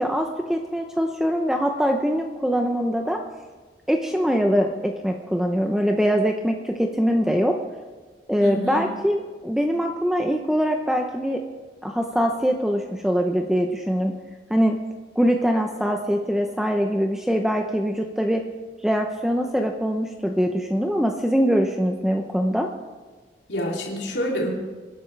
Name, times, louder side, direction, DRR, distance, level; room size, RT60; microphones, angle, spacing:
voice 1, 0.0-3.2 3.9-7.6 8.3-11.4 11.8-14.1 14.5-14.8 15.2-18.4 18.8-22.7, equal, 5° right, 3 dB, 0.8 m, -23 dB
voice 2, 8.4-8.9 23.5-24.5, equal, 85° left, -2 dB, 3.0 m, -27 dB
26.5 x 11.5 x 3.4 m, 1.4 s
head